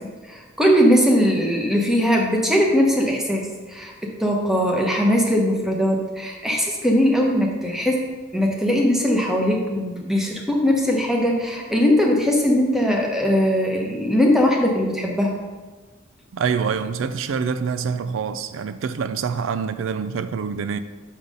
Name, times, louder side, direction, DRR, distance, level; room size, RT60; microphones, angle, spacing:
voice 1, 0.0-15.3, equal, ahead, 1.0 m, -20 dB
voice 2, 16.3-20.8, right 6 dB, 75° right, 0.4 m, -26 dB
6.4 x 5.6 x 5.4 m
head